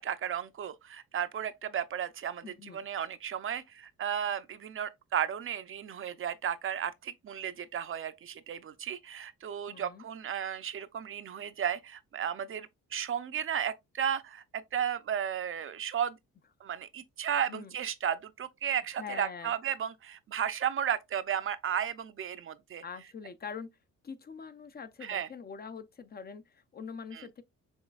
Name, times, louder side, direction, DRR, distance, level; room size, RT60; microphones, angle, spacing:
voice 1, 0.0-16.2 16.6-22.8 25.0-25.3 27.1-27.3, right 9 dB, 45° right, 0.5 m, -34 dB
voice 2, 2.4-2.9 9.7-10.0 17.5-17.7 18.9-19.5 22.8-23.7 24.0-27.4, left 6 dB, 30° left, 0.5 m, -44 dB
6.2 x 3.2 x 2.3 m
cardioid pair, 90°, 30 cm